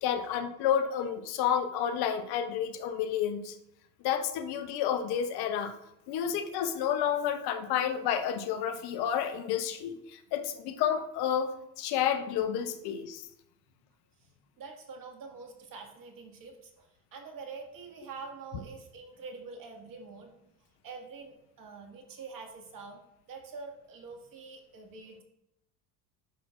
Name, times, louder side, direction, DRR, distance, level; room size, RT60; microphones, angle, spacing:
voice 1, 0.0-3.5 4.0-5.7 6.1-13.2, left 9 dB, 55° left, 9 dB, 0.9 m, -30 dB
voice 2, 14.2-20.4 20.8-23.0 23.3-25.2, right 4 dB, 45° right, 2 dB, 1.9 m, -46 dB
10.0 x 6.0 x 2.5 m, 0.82 s
hypercardioid pair, 65°, 45 cm